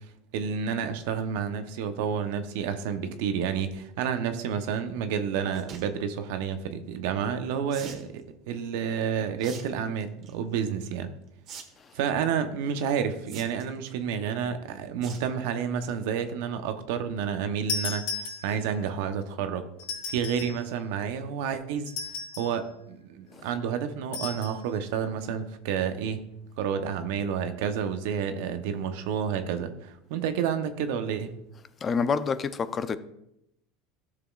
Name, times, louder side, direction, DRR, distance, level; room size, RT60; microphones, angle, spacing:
voice 1, 0.3-11.1 11.9-19.6 20.1-21.9 22.4-26.2 26.6-31.3, right 7 dB, 75° right, 0.8 m, -30 dB
sound 1, 5.4-5.8 7.7-8.1 9.4-9.6 10.0-10.3 11.5-11.6 11.9-12.0 13.3-13.8 15.0-15.3 15.7-15.9 16.3-16.4 16.6-16.7, right 6 dB, 50° right, 1.4 m, -42 dB
sound 2, 17.7-18.8 19.8-20.6 21.9-22.6 24.1-24.6, left 4 dB, 85° left, 3.1 m, -35 dB
voice 2, 31.8-33.0, left 5 dB, 30° left, 0.5 m, -27 dB
13.0 x 6.7 x 2.4 m
supercardioid pair, 110°, 0 cm